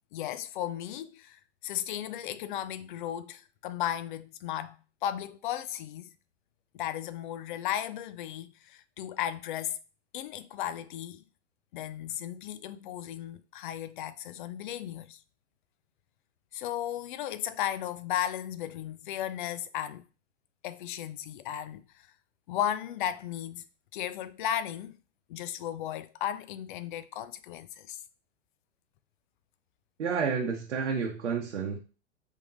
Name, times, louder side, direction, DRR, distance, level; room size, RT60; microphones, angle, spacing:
voice 1, 0.1-6.1 6.7-9.8 10.1-11.2 11.7-15.2 16.5-20.0 20.6-22.1 22.5-23.7 23.9-25.0 25.3-28.0, left 11 dB, 45° left, 0.5 m, -35 dB
voice 2, 30.0-31.8, right 5 dB, 75° right, 0.9 m, -30 dB
5.3 x 3.6 x 2.6 m
figure-of-eight pair, 105°, 37 cm